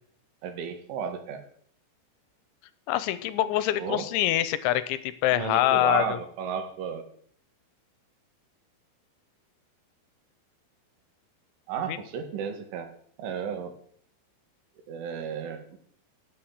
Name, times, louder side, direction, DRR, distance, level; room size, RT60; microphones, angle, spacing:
voice 1, 0.4-1.4 3.8-4.1 5.3-7.0 11.7-12.9 13.2-13.8 14.9-15.8, right 7 dB, 85° right, 7 dB, 4.6 m, -33 dB
voice 2, 2.9-6.2 11.9-12.0, left 14 dB, 80° left, 15 dB, 3.2 m, -25 dB
17.5 x 9.4 x 8.0 m, 0.62 s
omnidirectional pair, 5.4 m